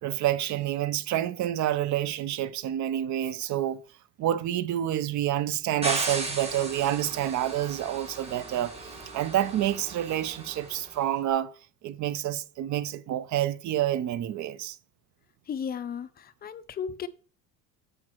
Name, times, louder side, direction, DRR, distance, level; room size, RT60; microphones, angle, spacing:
voice 1, 0.0-3.8 4.2-8.7 9.1-11.5 11.8-14.8, right 12 dB, 50° right, 0.6 m, -28 dB
sound 1, 5.8-10.9, right 2 dB, 15° right, 1.6 m, -36 dB
voice 2, 15.5-17.1, left 7 dB, 25° left, 0.4 m, -35 dB
7.7 x 5.9 x 3.0 m
cardioid pair, 140°, 37 cm